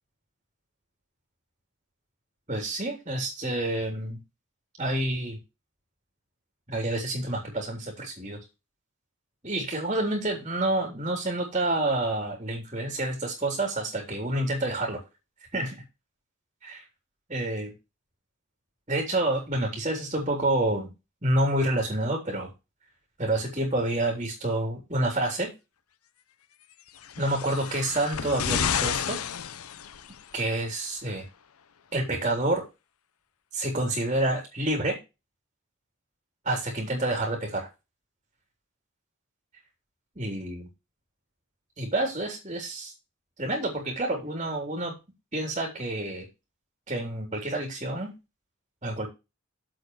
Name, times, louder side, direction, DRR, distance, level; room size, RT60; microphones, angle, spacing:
voice 1, 2.5-4.2 4.8-5.4 6.7-8.4 9.4-15.0 15.5-15.8 16.6-16.8 17.3-17.7 18.9-20.9 21.2-22.5 23.2-25.5 27.2-29.2 30.3-31.2 31.9-32.6 33.5-35.0 36.4-37.7 40.2-40.7 41.8-42.9 43.4-44.9 45.3-46.3 46.9-48.1 48.8-49.1, right 1 dB, 30° right, 1 dB, 3.8 m, -28 dB
sound 1, 27.0-30.3 31.3-31.4, left 8 dB, 85° left, 0.7 m, -31 dB
9.1 x 7.8 x 4.9 m, 0.26 s
head